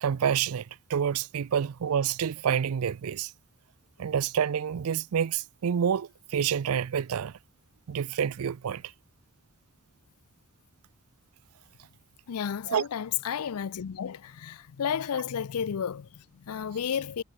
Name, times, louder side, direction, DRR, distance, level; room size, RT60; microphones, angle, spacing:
voice 1, 0.0-3.3 4.0-7.3 7.9-8.8 12.7-12.8, right 8 dB, 85° right, 0.4 m, -28 dB
voice 2, 12.3-17.2, left 8 dB, 90° left, 0.5 m, -32 dB
head